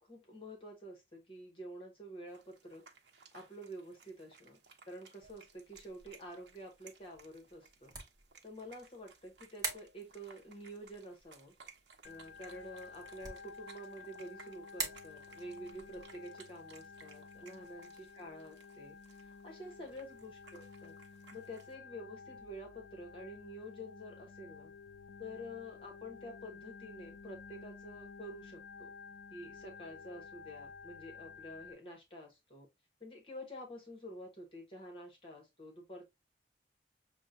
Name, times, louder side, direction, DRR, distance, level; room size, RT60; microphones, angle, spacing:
voice 1, 0.0-2.8 3.3-4.6 4.9-7.9 8.4-11.5 12.0-20.9 21.3-24.7 25.2-28.9 29.3-32.7 33.0-36.1, equal, 30° left, 1.0 m, -49 dB
sound 1, 2.3-21.7, right 5 dB, 80° right, 0.7 m, -61 dB
sound 2, 5.2-19.4, right 3 dB, 20° right, 0.9 m, -49 dB
Organ, 12.0-31.7, left 5 dB, 85° left, 0.4 m, -52 dB
6.2 x 2.1 x 2.5 m
head